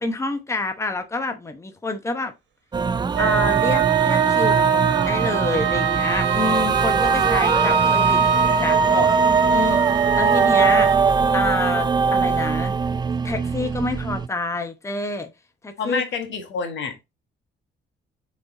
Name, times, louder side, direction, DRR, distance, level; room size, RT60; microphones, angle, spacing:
voice 1, 0.0-2.3 3.2-9.1 9.5-10.9 11.3-12.7 13.2-15.3 15.6-16.0, left 3 dB, 15° left, 0.9 m, -28 dB
sound 1, 2.7-14.3, right 4 dB, 20° right, 0.4 m, -21 dB
Wind instrument woodwind instrument, 3.1-11.0, right 10 dB, 70° right, 1.3 m, -24 dB
voice 2, 15.8-16.9, left 5 dB, 70° left, 1.6 m, -27 dB
6.6 x 4.2 x 3.8 m
cardioid pair, 90°, 20 cm